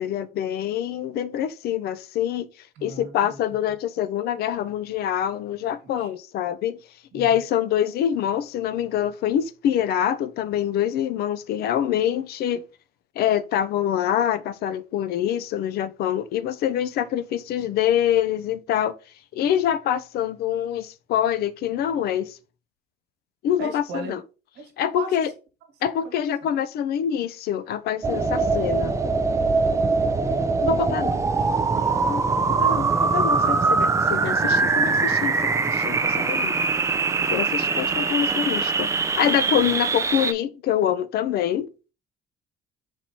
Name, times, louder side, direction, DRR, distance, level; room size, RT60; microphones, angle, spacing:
voice 1, 0.0-2.5 2.8-6.8 7.1-12.6 13.2-18.9 19.3-22.4 23.4-24.2 24.8-25.3 25.8-28.9 30.6-31.1 32.0-32.2 32.6-36.6 37.3-41.7, left 10 dB, 70° left, 0.5 m, -25 dB
voice 2, 2.7-3.4 5.8-6.1 7.1-7.3 23.6-24.2 24.5-25.2 26.0-26.1 30.1-30.5 31.1-35.0 39.6-39.7, right 4 dB, 80° right, 1.4 m, -39 dB
sound 1, 28.0-40.3, right 4 dB, 15° right, 0.4 m, -22 dB
4.5 x 4.3 x 2.7 m
cardioid pair, 110°, 17 cm